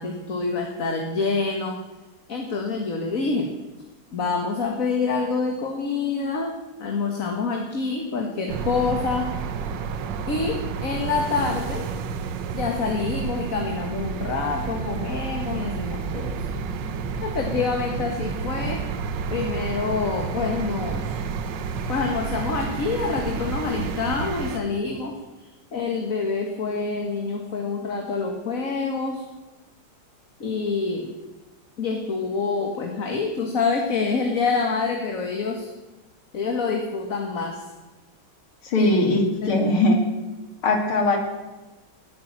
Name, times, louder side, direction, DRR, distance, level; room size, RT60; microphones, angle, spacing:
voice 1, 0.0-1.8 2.3-3.5 4.1-9.3 10.3-11.9 12.5-16.4 17.2-18.8 19.3-21.2 21.9-29.2 30.4-31.1 31.8-35.7 36.3-37.7 38.8-39.0 39.4-39.6, left 4 dB, 40° left, 2 dB, 1.8 m, -27 dB
sound 1, 8.5-24.6, right 5 dB, 65° right, 1.5 m, -30 dB
voice 2, 38.6-40.0 40.6-41.2, left 2 dB, 85° left, 3 dB, 3.4 m, -20 dB
19.5 x 9.7 x 7.5 m, 1.2 s
omnidirectional pair, 2.3 m